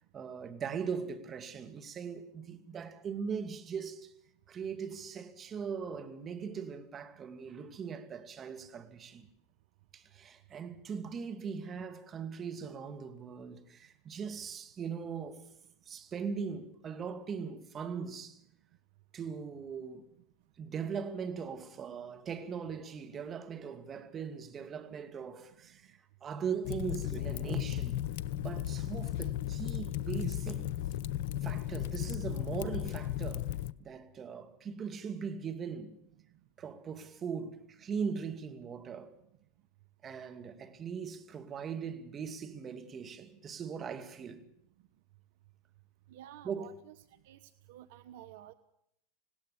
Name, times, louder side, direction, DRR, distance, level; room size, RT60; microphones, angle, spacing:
voice 1, 0.1-4.1 4.5-9.3 9.9-15.4 15.9-18.4 19.1-20.1 20.6-28.1 28.4-30.7 31.4-36.0 36.6-39.2 40.0-44.4 46.4-46.7, right 6 dB, 35° right, 2.5 m, -40 dB
Fire, 26.6-33.7, left 13 dB, 65° left, 0.7 m, -35 dB
voice 2, 46.1-46.9 47.2-47.4 47.7-48.5, right 12 dB, 70° right, 1.0 m, -51 dB
19.5 x 17.0 x 8.5 m
hypercardioid pair, 90°, 0 cm